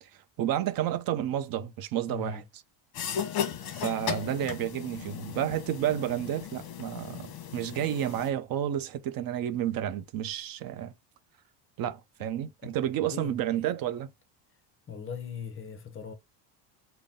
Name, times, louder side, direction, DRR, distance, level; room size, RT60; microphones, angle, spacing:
voice 1, 0.0-2.4 3.7-10.9 11.8-14.1, right 11 dB, 50° right, 0.6 m, -31 dB
voice 2, 2.1-2.5 12.2-12.3 12.6-12.7 13.1-13.3 14.9-16.1, left 7 dB, 25° left, 0.6 m, -39 dB
sound 1, 2.9-8.3, left 8 dB, 50° left, 1.0 m, -36 dB
3.9 x 2.2 x 3.5 m
cardioid pair, 130°, 47 cm